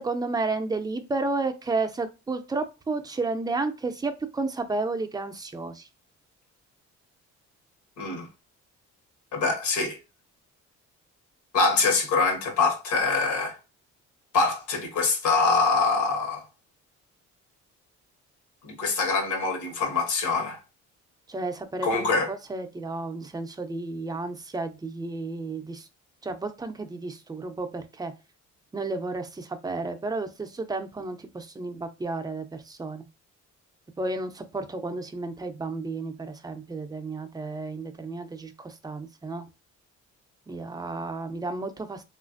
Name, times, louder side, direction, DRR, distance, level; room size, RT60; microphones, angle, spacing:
voice 1, 0.0-5.9 21.3-25.9 26.2-28.1 28.7-33.0 34.0-39.5 40.5-42.0, right 3 dB, 15° right, 0.5 m, -32 dB
voice 2, 8.0-8.3 9.3-10.0 11.5-13.6 14.3-16.4 18.6-20.6 21.8-22.3, left 4 dB, 80° left, 1.1 m, -24 dB
3.1 x 2.5 x 2.4 m
cardioid pair, 90°, 30 cm